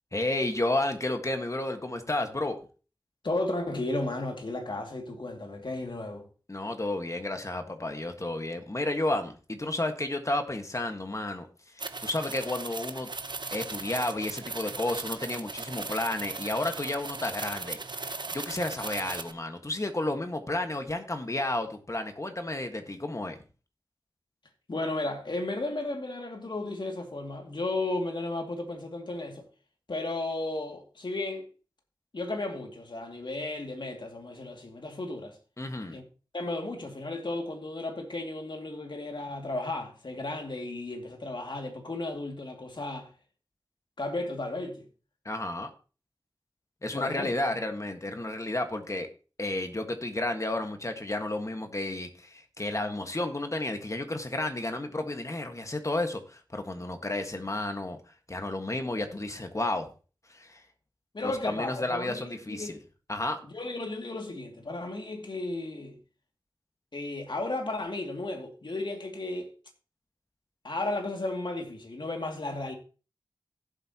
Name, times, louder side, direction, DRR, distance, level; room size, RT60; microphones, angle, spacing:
voice 1, 0.1-2.6 6.5-11.5 11.7-13.1 13.5-23.4 35.6-36.0 45.2-45.7 46.8-49.1 49.4-58.0 58.3-59.9 60.3-60.6 61.2-62.8 63.1-63.4, left 2 dB, 40° left, 1.5 m, -32 dB
voice 2, 3.2-6.3 24.7-29.5 29.9-31.5 32.1-35.4 35.9-36.0 36.3-43.1 44.0-44.9 46.9-47.3 61.1-62.8 63.4-66.0 66.9-69.5 70.6-72.7, left 2 dB, 65° left, 2.4 m, -34 dB
sound 1, 11.8-19.3, right 3 dB, 65° right, 0.9 m, -38 dB
16.5 x 7.8 x 2.9 m
wide cardioid pair, 65°, 8 cm